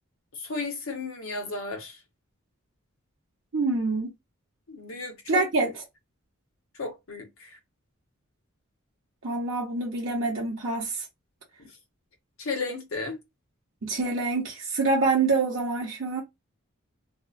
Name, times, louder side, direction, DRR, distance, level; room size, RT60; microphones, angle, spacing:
voice 1, 0.3-2.0 4.7-5.4 6.8-7.6 11.6-11.7 12.4-13.2, left 3 dB, 75° left, 0.8 m, -34 dB
voice 2, 3.5-4.1 5.3-5.7 9.2-11.0 13.8-16.2, right 3 dB, 60° right, 0.6 m, -26 dB
2.7 x 2.0 x 2.4 m
head